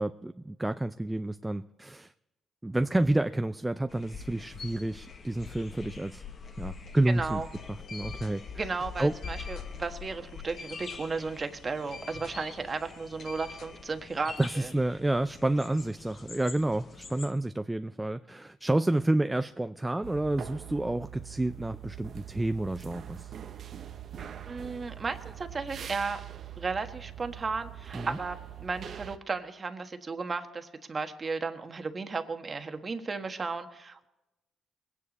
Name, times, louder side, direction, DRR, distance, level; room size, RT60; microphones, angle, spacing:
voice 1, 0.0-2.1 2.6-6.2 6.6-7.4 7.9-8.4 9.0-9.1 14.4-23.3 27.9-28.2, right 1 dB, 10° right, 10 dB, 0.4 m, -29 dB
sound 1, 3.9-17.3, left 6 dB, 45° left, 1.4 m, -45 dB
voice 2, 7.0-7.5 8.5-14.7 24.5-26.2 26.6-34.1, right 4 dB, 35° right, 7 dB, 1.4 m, -34 dB
sound 2, 7.5-14.1, left 4 dB, 75° left, 2.6 m, -49 dB
sound 3, 20.0-29.2, right 10 dB, 60° right, 0.8 m, -43 dB
21.0 x 9.8 x 4.2 m, 0.96 s
cardioid pair, 90°, 0 cm